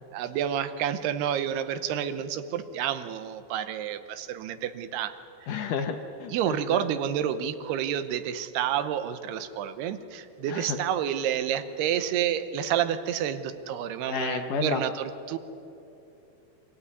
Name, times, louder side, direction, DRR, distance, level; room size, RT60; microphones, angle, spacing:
voice 1, 0.1-5.2 6.3-15.4, right 10 dB, 80° right, 11 dB, 2.9 m, -29 dB
voice 2, 5.5-6.9 10.5-10.8 14.1-14.8, left 7 dB, 70° left, 5 dB, 2.1 m, -31 dB
25.5 x 16.0 x 9.5 m, 2.9 s
omnidirectional pair, 4.6 m